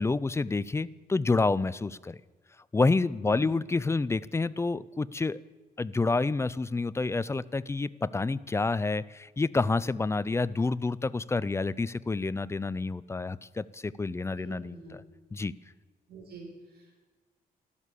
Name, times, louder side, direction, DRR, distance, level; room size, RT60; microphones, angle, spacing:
voice 1, 0.0-2.2 2.7-5.4 5.8-14.8 15.3-15.5, left 3 dB, 15° left, 18 dB, 0.4 m, -28 dB
voice 2, 3.2-3.5 14.4-15.0 16.1-16.9, right 4 dB, 75° right, 1 dB, 4.6 m, -47 dB
13.0 x 12.5 x 8.2 m, 1.3 s
cardioid pair, 125°, 17 cm